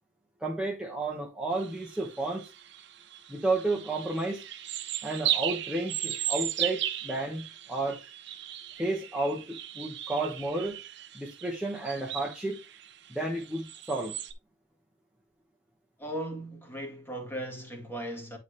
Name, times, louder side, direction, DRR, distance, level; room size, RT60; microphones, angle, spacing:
voice 1, 0.4-2.5 3.3-4.4 5.0-8.0 8.8-10.8 11.1-12.6 13.1-14.2, right 2 dB, 5° right, 1.2 m, -32 dB
sound 1, 1.5-14.3, right 12 dB, 65° right, 0.9 m, -36 dB
voice 2, 16.0-18.4, right 1 dB, 10° left, 1.8 m, -37 dB
9.4 x 4.1 x 3.3 m
head